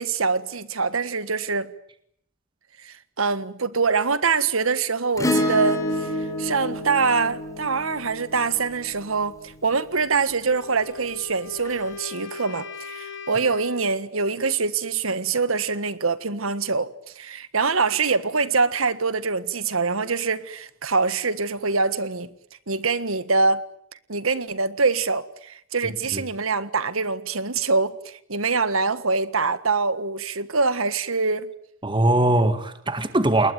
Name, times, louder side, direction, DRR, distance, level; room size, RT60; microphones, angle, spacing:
voice 1, 0.0-1.7 2.8-22.3 22.7-23.6 24.1-31.5, right 4 dB, 85° right, 1.6 m, -24 dB
Acoustic guitar / Strum, 5.2-9.8 11.7-11.8, left 1 dB, 15° left, 4.8 m, -28 dB
Wind instrument woodwind instrument, 10.5-14.0, left 5 dB, 60° left, 2.5 m, -39 dB
voice 2, 25.8-26.2 31.8-33.5, right 1 dB, 25° right, 1.8 m, -21 dB
28.5 x 21.0 x 9.4 m
head